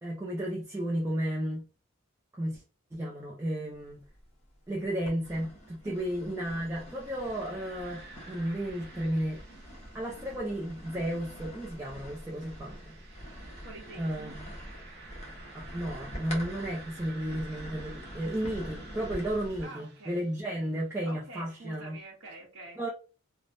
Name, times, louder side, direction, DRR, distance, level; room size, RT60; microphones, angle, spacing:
voice 1, 0.0-1.7 2.3-2.6 2.9-4.0 4.7-9.4 9.9-13.0 13.5-13.6 14.0-14.5 15.5-22.0 22.8-22.9, right 1 dB, 15° right, 0.5 m, -33 dB
sound 1, 3.8-4.5 5.0-19.7, equal, 35° left, 1.0 m, -45 dB
sound 2, 6.7-20.6, right 3 dB, 55° right, 0.9 m, -53 dB
voice 2, 13.4-14.4 19.6-20.3 21.0-22.8, right 2 dB, 80° right, 0.9 m, -47 dB
3.3 x 2.1 x 2.5 m
head